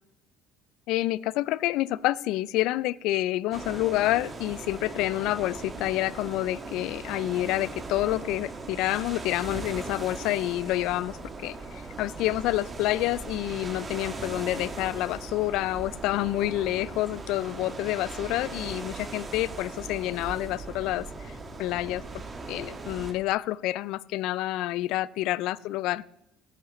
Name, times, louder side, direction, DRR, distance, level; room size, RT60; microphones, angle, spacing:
voice 1, 0.9-22.0 22.5-26.0, left 16 dB, 70° left, 21 dB, 0.3 m, -28 dB
sound 1, 3.5-23.1, right 3 dB, 30° right, 1.9 m, -39 dB
17.0 x 10.0 x 3.2 m, 0.79 s
hypercardioid pair, 70°, 0 cm